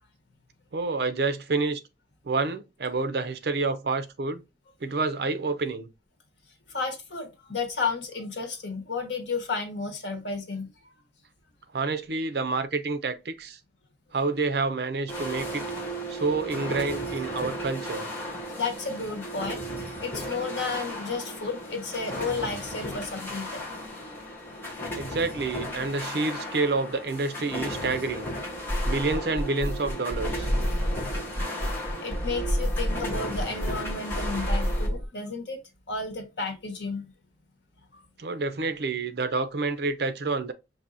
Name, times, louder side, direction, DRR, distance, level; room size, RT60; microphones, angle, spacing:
voice 1, 0.7-1.8 2.2-4.4 4.8-5.9 11.7-13.6 14.1-15.6 16.1-18.1 25.0-28.3 28.8-30.5 38.2-40.5, right 3 dB, 60° right, 0.5 m, -28 dB
voice 2, 6.7-10.7 18.6-19.7 20.0-23.6 32.0-35.6 35.9-37.1, left 4 dB, 85° left, 1.2 m, -32 dB
sound 1, 15.1-34.9, equal, 15° left, 1.0 m, -35 dB
sound 2, 28.7-35.0, equal, 55° left, 1.4 m, -29 dB
5.7 x 2.6 x 2.5 m
head